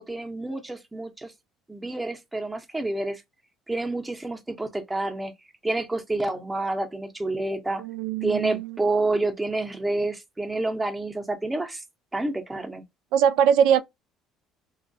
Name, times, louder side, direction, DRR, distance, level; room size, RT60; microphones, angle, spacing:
voice 1, 0.0-1.3 1.7-3.2 3.7-5.3 5.6-7.8 8.2-11.8 12.1-12.8, right 2 dB, 10° right, 0.6 m, -28 dB
voice 2, 7.8-8.8 13.1-13.8, right 8 dB, 80° right, 0.3 m, -21 dB
3.0 x 2.2 x 2.6 m
cardioid pair, 130°, 0 cm